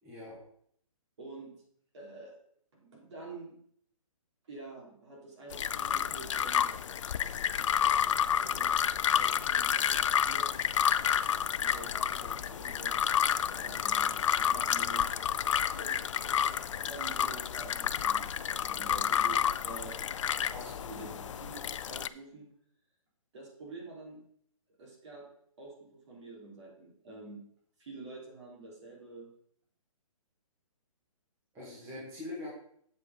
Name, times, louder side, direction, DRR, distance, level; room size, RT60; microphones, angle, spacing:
voice 1, 0.0-0.4 20.5-21.1 31.5-32.5, left 2 dB, 15° right, -6 dB, 2.0 m, -43 dB
voice 2, 1.2-1.5 1.9-2.4 2.7-3.6 4.5-6.7 8.4-8.8 9.1-10.7 11.6-13.1 13.4-15.1 15.8-20.0 20.9-22.5 23.3-24.2 24.8-25.2 25.6-27.4 27.8-29.3, right 3 dB, 55° right, -2 dB, 3.3 m, -48 dB
sound 1, 5.5-22.1, left 9 dB, 60° left, 0.4 m, -30 dB
7.5 x 6.3 x 4.0 m, 0.65 s
hypercardioid pair, 160°, 18 cm